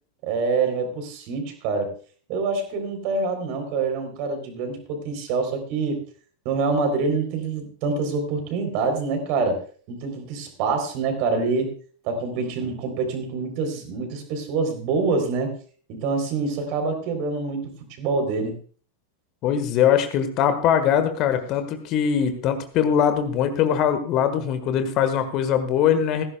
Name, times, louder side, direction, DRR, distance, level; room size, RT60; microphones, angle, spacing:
voice 1, 0.2-1.9 2.3-6.0 6.5-9.6 9.9-11.8 12.0-15.5 15.9-17.7 18.0-18.5, right 4 dB, 45° right, 6 dB, 3.5 m, -26 dB
voice 2, 19.4-26.2, left 8 dB, 40° left, 9 dB, 1.5 m, -21 dB
17.5 x 15.5 x 2.3 m, 0.42 s
figure-of-eight pair, 90°, 0 cm